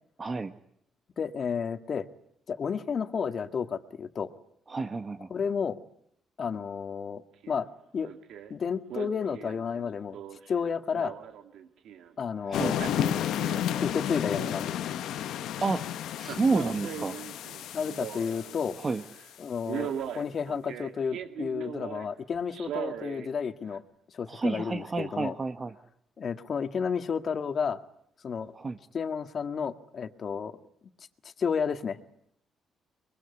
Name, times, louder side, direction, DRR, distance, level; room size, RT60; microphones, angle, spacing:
voice 1, 0.2-0.5 4.7-5.3 12.5-12.8 15.6-15.9 16.2-17.2 18.8-19.0 24.3-25.7 28.5-28.8, right 3 dB, 30° right, 8 dB, 1.3 m, -30 dB
voice 2, 1.2-2.1 2.5-4.3 5.3-5.8 6.4-7.7 7.9-8.1 8.5-10.2 10.5-11.1 12.2-12.9 13.8-14.8 17.7-18.8 19.4-23.8 24.1-25.4 26.2-27.8 28.2-28.5 28.9-30.6 31.2-32.0, left 6 dB, 50° left, 9 dB, 1.9 m, -31 dB
Male speech man speaking, 7.4-7.7 8.0-8.5 8.9-12.1 12.6-13.9 14.2-15.0 16.2-18.6 19.0-19.2 19.7-22.1 22.5-23.3 23.7-23.8, right 9 dB, 80° right, 2.5 m, -39 dB
sound 1, 12.5-19.2, left 11 dB, 80° left, 1.1 m, -32 dB
23.5 x 22.5 x 9.8 m, 0.72 s
cardioid pair, 90°, 0 cm